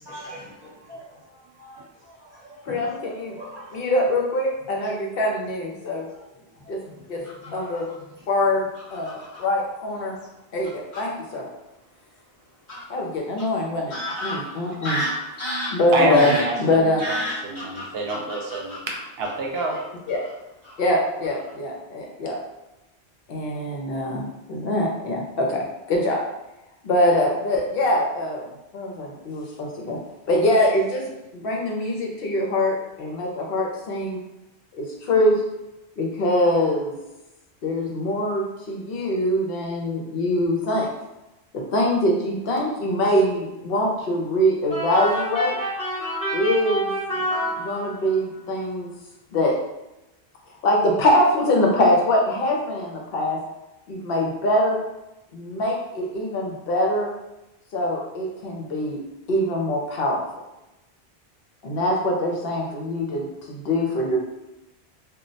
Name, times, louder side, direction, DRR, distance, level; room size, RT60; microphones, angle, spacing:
voice 1, 0.0-3.8 4.8-4.9 5.8-6.2 6.6-7.1 7.4-7.8, equal, 25° right, -6 dB, 0.8 m, -43 dB
voice 2, 2.6-3.4 3.7-6.1 6.7-6.8 7.1-7.2 7.5-7.9 8.3-10.1 10.5-11.4 12.9-13.9 14.2-15.0 15.7-16.3 16.6-17.0 20.1-20.2 20.8-22.4 23.3-26.2 26.8-28.4 28.7-30.0 30.3-31.0 31.3-34.2 34.8-35.4 36.0-36.9 37.6-40.9 41.5-45.6 46.3-47.2 47.5-48.9 49.3-49.5 50.6-53.4 53.9-54.8 55.3-57.1 57.7-59.0 59.3-60.2 61.6-64.2, left 1 dB, 65° left, -1 dB, 0.8 m, -23 dB
Fowl / Bird vocalization bird call bird song, 7.2-7.9 8.8-9.4 10.2-10.3 10.6-11.0 12.7-12.8 13.4-13.5 13.9-19.8 20.1-20.3 20.6-20.9 21.2-21.5, left 1 dB, 30° left, 0.9 m, -32 dB
voice 3, 15.9-16.5 17.0-18.8 19.2-19.8, right 2 dB, 70° right, 0 dB, 0.8 m, -26 dB
sound 1, 44.7-48.2, right 1 dB, 5° left, 0.6 m, -28 dB
2.2 x 2.1 x 3.8 m, 0.96 s
omnidirectional pair, 1.1 m